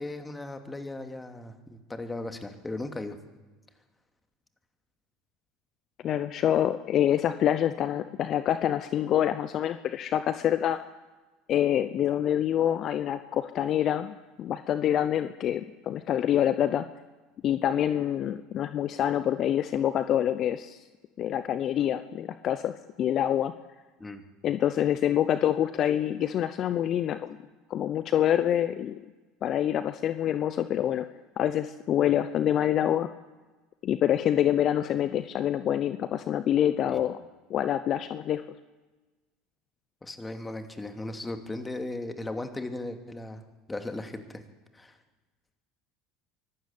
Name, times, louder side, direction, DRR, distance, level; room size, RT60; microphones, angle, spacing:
voice 1, 0.0-3.2 24.0-24.2 36.9-37.0 40.0-43.4 43.7-44.4 44.7-45.0, left 2 dB, 15° left, 7 dB, 2.7 m, -37 dB
voice 2, 6.0-10.8 11.5-16.9 17.4-20.8 21.2-23.5 24.4-27.4 27.7-29.0 29.4-31.1 31.4-33.1 33.8-37.2 37.5-38.4, left 10 dB, 50° left, 12 dB, 0.8 m, -26 dB
24.0 x 12.5 x 8.6 m, 1.2 s
hypercardioid pair, 80°, 0 cm